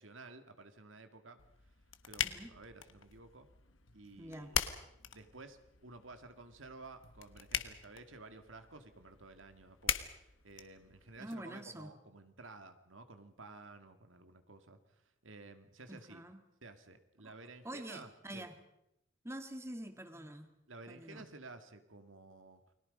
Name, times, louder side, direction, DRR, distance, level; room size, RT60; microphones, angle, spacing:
voice 1, 0.0-1.4 2.0-3.5 3.9-4.7 5.1-14.8 15.2-16.2 16.6-18.5 20.7-22.6, right 3 dB, 80° right, 8 dB, 2.0 m, -53 dB
sound 1, 1.4-11.3, left 9 dB, 80° left, 1.4 m, -42 dB
voice 2, 2.2-2.5 4.2-4.5 11.2-11.9 15.9-16.4 17.2-17.3 17.6-18.5 19.2-20.5 20.9-21.3, right 1 dB, 15° right, 7 dB, 1.7 m, -46 dB
30.0 x 21.5 x 5.4 m, 0.83 s
head